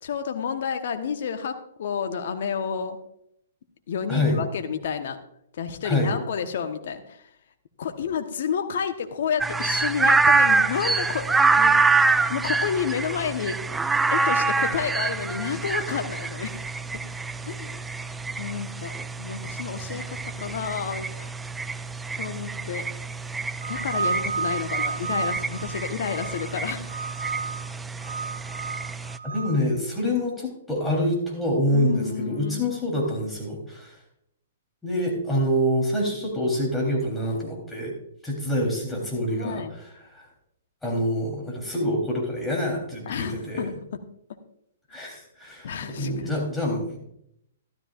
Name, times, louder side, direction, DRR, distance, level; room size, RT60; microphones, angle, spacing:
voice 1, 0.0-3.0 3.9-5.2 5.5-7.2 7.8-11.8 12.3-13.6 14.1-16.6 17.4-17.8 18.4-21.3 22.2-22.9 23.7-26.9 31.7-32.7 39.3-39.8 43.1-44.0 45.6-46.4, left 7 dB, 60° left, 7 dB, 1.1 m, -30 dB
voice 2, 4.1-4.4 5.8-6.1 29.2-34.0 34.8-37.9 38.2-39.6 40.1-40.3 40.8-43.7 44.9-47.0, left 1 dB, 5° left, -2 dB, 3.5 m, -26 dB
sound 1, 9.4-29.2, right 4 dB, 10° right, 0.3 m, -26 dB
sound 2, 23.6-26.5 26.9-27.7 28.0-29.6, right 5 dB, 75° right, 0.7 m, -31 dB
13.0 x 12.5 x 2.5 m, 0.75 s
hypercardioid pair, 120°, 0 cm